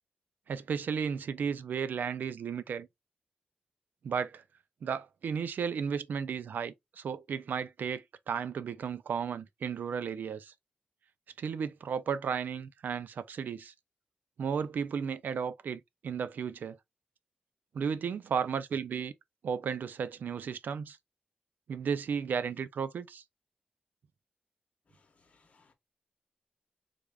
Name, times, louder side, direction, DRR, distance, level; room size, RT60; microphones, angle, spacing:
voice 1, 0.5-2.9 4.0-4.4 4.8-10.5 11.4-13.7 14.4-16.8 17.7-19.1 19.4-21.0 21.7-23.2, right 6 dB, 85° right, 0.4 m, -34 dB
voice 2, 24.9-25.7, left 4 dB, 45° left, 0.8 m, -67 dB
3.3 x 2.4 x 3.4 m
wide cardioid pair, 160°, 3 cm